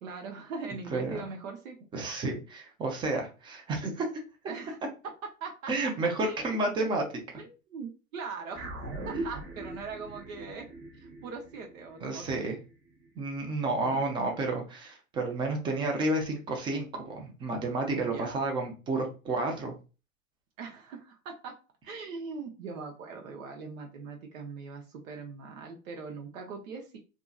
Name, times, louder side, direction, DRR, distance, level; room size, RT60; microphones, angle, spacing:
voice 1, 0.0-1.8 4.5-4.8 5.0-5.1 5.4-5.9 6.2-6.9 7.4-8.7 9.1-10.7 11.0-12.6 13.8-14.0 18.0-18.4 20.6-21.6 21.8-27.0, right 5 dB, 65° right, 3 dB, 0.7 m, -41 dB
voice 2, 1.9-4.1 5.7-7.0 12.0-12.6 13.2-19.7, right 2 dB, 10° right, 3 dB, 0.4 m, -31 dB
sound 1, 8.5-13.2, right 2 dB, 30° right, 0.8 m, -41 dB
2.7 x 2.4 x 2.3 m, 0.33 s
hypercardioid pair, 110°, 43 cm